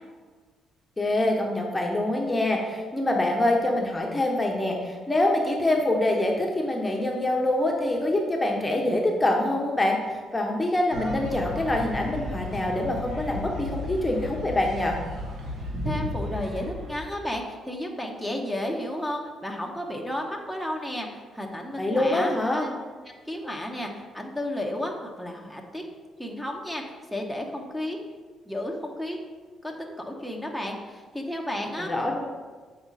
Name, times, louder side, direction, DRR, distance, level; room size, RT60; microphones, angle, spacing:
voice 1, 1.0-15.0 21.8-22.7 31.8-32.2, left 1 dB, 15° left, 1 dB, 1.0 m, -25 dB
sound 1, 10.9-17.2, left 1 dB, 70° right, 1.3 m, -34 dB
voice 2, 15.8-22.3 22.6-22.8 23.3-25.8 26.2-26.8 27.1-28.0 28.5-29.2 29.6-31.9, left 1 dB, 5° right, 1 dB, 1.0 m, -32 dB
7.8 x 4.9 x 4.1 m, 1.5 s
cardioid pair, 90°, 0 cm